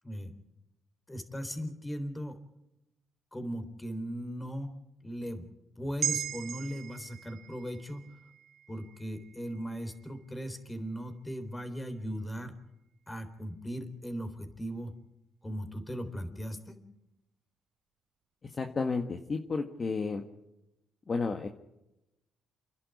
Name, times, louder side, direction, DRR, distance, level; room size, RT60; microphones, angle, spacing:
voice 1, 1.1-2.4 3.3-4.7 5.0-5.5 5.8-8.2 8.7-12.5 13.1-14.9 15.4-16.8, equal, 15° left, 9 dB, 3.8 m, -38 dB
sound 1, 6.0-10.5 10.9-11.0, right 9 dB, 65° right, 1.2 m, -39 dB
voice 2, 18.6-20.2 21.1-21.5, left 4 dB, 40° left, 4 dB, 1.7 m, -32 dB
30.0 x 11.0 x 9.7 m, 0.90 s
cardioid pair, 90°, 0 cm